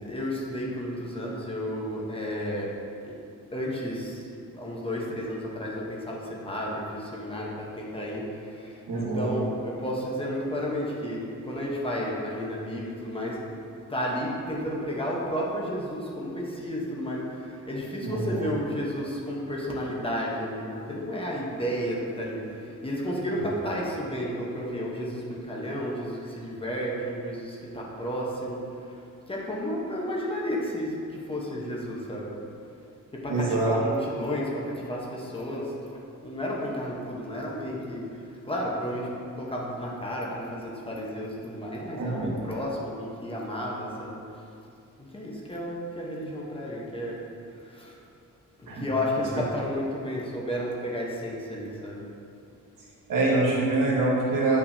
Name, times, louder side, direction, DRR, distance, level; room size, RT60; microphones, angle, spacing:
voice 1, 0.0-2.7 3.0-3.1 3.5-4.3 4.5-13.4 13.9-28.6 29.3-32.4 33.2-35.7 36.2-44.2 45.0-47.2 47.6-48.0 48.6-52.0, equal, 15° left, -4 dB, 1.0 m, -32 dB
voice 2, 8.9-9.3 18.0-18.5 33.3-33.7 41.9-42.3 48.7-48.9 53.1-54.6, right 2 dB, 90° right, -4 dB, 1.5 m, -25 dB
8.4 x 5.9 x 2.7 m, 2.5 s
wide cardioid pair, 160°, 32 cm